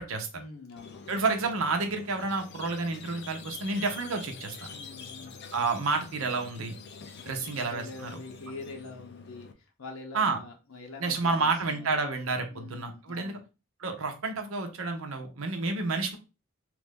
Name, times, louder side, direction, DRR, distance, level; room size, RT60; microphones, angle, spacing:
voice 1, 0.3-1.0 4.7-5.4 7.2-12.0 12.5-13.4, left 3 dB, 85° left, 2 dB, 0.8 m, -45 dB
Squeak, 0.8-9.5, left 5 dB, 55° left, 0.5 m, -46 dB
voice 2, 1.1-4.7 5.5-6.7 7.3-8.1 10.1-10.4 11.0-13.4 13.8-16.2, right 3 dB, 80° right, 5 dB, 0.7 m, -30 dB
3.0 x 2.5 x 3.5 m, 0.30 s
head